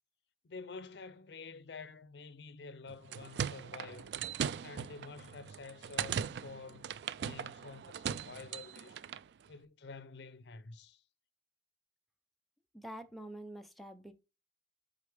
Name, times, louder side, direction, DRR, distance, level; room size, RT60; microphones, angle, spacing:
voice 1, 0.4-4.1 4.6-6.9 7.2-9.0 9.5-11.0, left 4 dB, 75° left, 0.6 m, -49 dB
sound 1, 2.9-9.3, right 8 dB, 70° right, 0.3 m, -39 dB
voice 2, 12.7-14.1, right 1 dB, ahead, 0.7 m, -46 dB
8.1 x 3.8 x 3.4 m
head